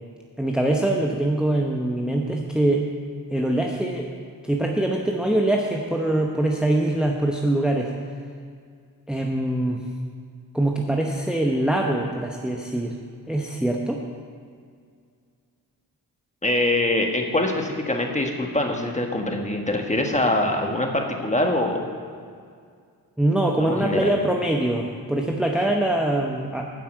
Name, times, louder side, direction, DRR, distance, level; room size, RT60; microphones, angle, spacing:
voice 1, 0.4-2.9 3.3-4.1 4.4-7.9 9.1-9.8 10.5-12.9 13.3-14.0 23.2-26.7, right 1 dB, ahead, 0 dB, 0.9 m, -23 dB
voice 2, 16.4-21.9 23.6-24.1, left 1 dB, 15° left, 2 dB, 1.6 m, -24 dB
9.4 x 5.6 x 7.6 m, 2.2 s
cardioid pair, 45°, 40 cm